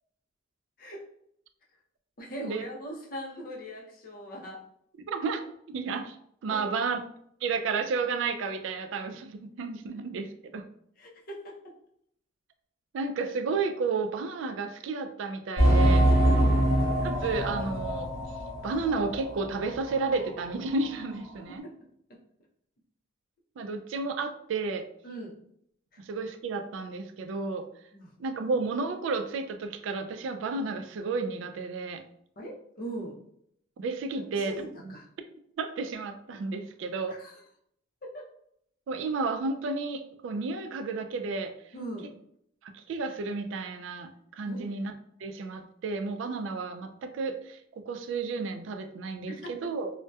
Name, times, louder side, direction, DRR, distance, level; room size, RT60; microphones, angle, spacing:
voice 1, 2.2-4.7 6.5-6.9 11.0-11.7 16.2-16.6 21.6-21.7 25.0-25.3 25.9-26.0 27.9-28.1 32.4-33.2 34.2-35.1 37.1-37.4 38.0-38.3 41.7-42.1 44.5-44.7 49.3-49.5, right 1 dB, 45° left, -2 dB, 0.5 m, -40 dB
voice 2, 5.1-6.2 6.4-7.0 7.4-10.6 12.9-16.1 17.0-18.1 18.6-21.6 23.6-24.9 26.0-27.7 28.2-32.0 33.8-34.5 35.6-37.2 38.9-41.5 42.6-44.9 45.2-49.9, right 4 dB, 75° right, 7 dB, 0.3 m, -32 dB
sound 1, 15.6-19.9 20.2-20.3 20.8-20.9, right 1 dB, 30° right, 0.7 m, -24 dB
2.6 x 2.1 x 2.2 m, 0.71 s
head